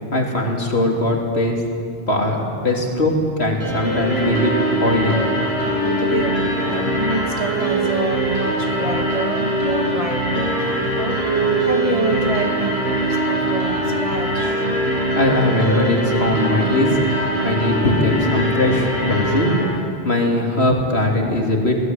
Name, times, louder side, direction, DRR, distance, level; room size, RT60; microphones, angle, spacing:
voice 1, 0.1-1.6 2.1-4.5 4.8-5.2 5.4-5.5 15.2-17.0 17.4-21.8, left 1 dB, 85° left, 0 dB, 3.8 m, -20 dB
sound 1, 3.6-19.6, right 1 dB, 85° right, 7.1 m, -21 dB
voice 2, 5.8-11.2 11.7-14.7, right 2 dB, 35° right, 3 dB, 2.2 m, -27 dB
25.5 x 18.5 x 9.4 m, 2.5 s
omnidirectional pair, 1.1 m